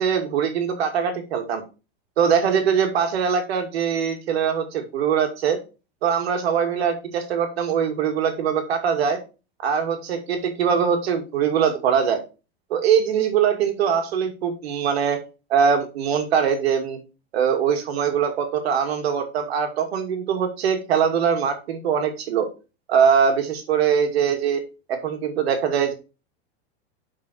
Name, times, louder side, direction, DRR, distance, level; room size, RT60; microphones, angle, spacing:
voice 1, 0.0-1.6 2.2-5.6 6.0-9.2 9.6-12.2 12.7-15.2 15.5-17.0 17.3-22.5 22.9-24.6 24.9-25.9, right 7 dB, 85° right, 6 dB, 2.4 m, -22 dB
7.7 x 5.7 x 4.4 m, 0.30 s
supercardioid pair, 180°, 30 cm